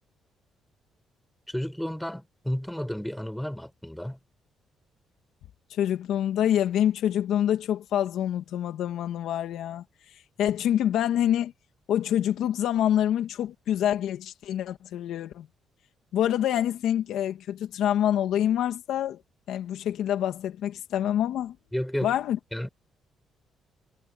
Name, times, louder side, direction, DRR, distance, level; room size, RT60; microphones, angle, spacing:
voice 1, 1.5-4.2 21.7-22.1 22.5-22.7, equal, 5° left, 6.1 m, -32 dB
voice 2, 5.7-9.8 10.4-11.5 11.9-15.5 16.1-19.2 19.5-21.6 22.0-22.4, left 11 dB, 80° left, 2.3 m, -26 dB
cardioid pair, 90°, 0 cm